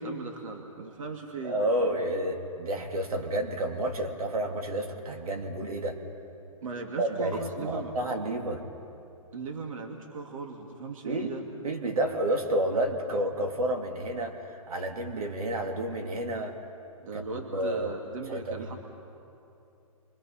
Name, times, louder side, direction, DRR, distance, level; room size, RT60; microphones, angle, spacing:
voice 1, 0.0-1.6 6.6-7.9 9.3-11.4 17.0-18.8, right 3 dB, 65° right, 3 dB, 2.3 m, -37 dB
voice 2, 1.4-6.0 7.0-8.6 11.0-11.3 11.6-16.6 17.1-17.2 17.5-18.0 18.3-18.7, right 1 dB, 80° right, 4 dB, 2.7 m, -30 dB
29.5 x 24.5 x 5.8 m, 2.8 s
hypercardioid pair, 150°, 19 cm